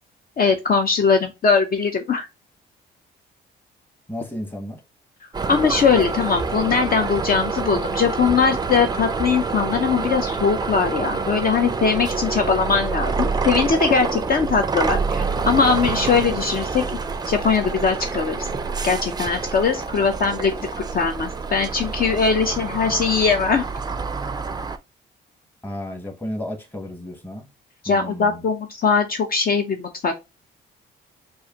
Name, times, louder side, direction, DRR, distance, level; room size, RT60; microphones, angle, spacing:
voice 1, 0.4-2.3 5.5-16.8 17.3-18.5 18.8-23.7 27.8-30.2, left 5 dB, 50° left, 0.6 m, -21 dB
voice 2, 4.1-4.8 25.6-27.5 27.9-28.4, left 1 dB, 10° left, 1.1 m, -32 dB
sound 1, 5.3-24.8, right 4 dB, 20° right, 0.4 m, -27 dB
4.7 x 2.5 x 2.8 m
cardioid pair, 90°, 20 cm